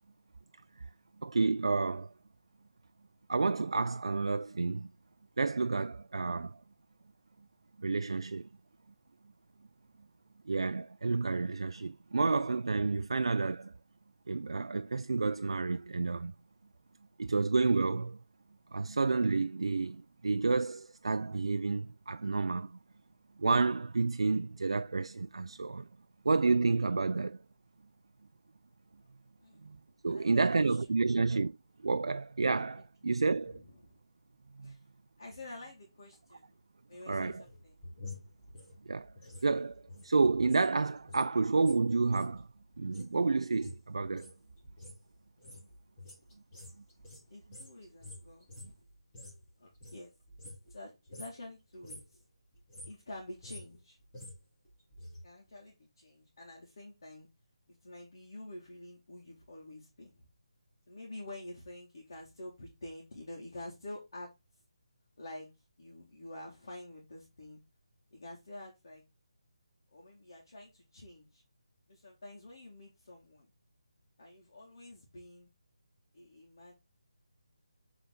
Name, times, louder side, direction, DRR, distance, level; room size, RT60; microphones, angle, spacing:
voice 1, 1.2-2.1 3.3-4.9 5.4-6.6 7.8-8.5 10.5-13.7 14.3-16.3 17.2-18.2 18.7-22.8 23.4-25.9 26.2-27.4 29.6-29.8 30.0-31.6 31.8-33.6 34.6-34.8 37.1-37.3 38.9-39.1 39.4-42.5 42.8-44.3, right 3 dB, 75° right, 0.3 m, -30 dB
voice 2, 30.1-31.0 33.0-33.2 33.5-34.0 34.6-34.8 35.2-36.5 36.9-37.8 47.3-48.4 49.6-50.1 50.7-52.2 52.9-54.0 55.2-57.3 57.7-60.3 60.9-64.3 65.2-65.5 65.8-67.6 68.1-69.0 69.9-71.4 71.9-73.5 74.2-75.5 76.1-76.7, left 1 dB, 45° left, 2.2 m, -48 dB
sound 1, 37.3-40.7 41.0-49.5 49.7-50.8 51.1-51.4 51.7-52.2 52.5-55.2 55.5-55.6, left 2 dB, 10° left, 1.9 m, -50 dB
7.0 x 4.0 x 3.8 m
hypercardioid pair, 175°, 3 cm